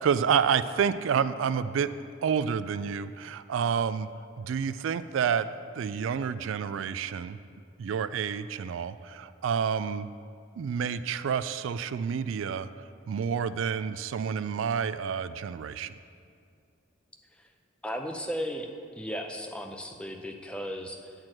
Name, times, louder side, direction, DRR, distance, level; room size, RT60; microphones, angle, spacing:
voice 1, 0.0-1.9 2.2-4.1 4.4-5.5 5.8-7.4 7.8-10.1 10.6-12.7 13.1-15.9, right 7 dB, 85° right, 13 dB, 0.3 m, -29 dB
voice 2, 17.8-18.7 19.0-21.1, equal, 5° left, 3 dB, 0.5 m, -35 dB
9.5 x 4.5 x 7.6 m, 2.3 s
head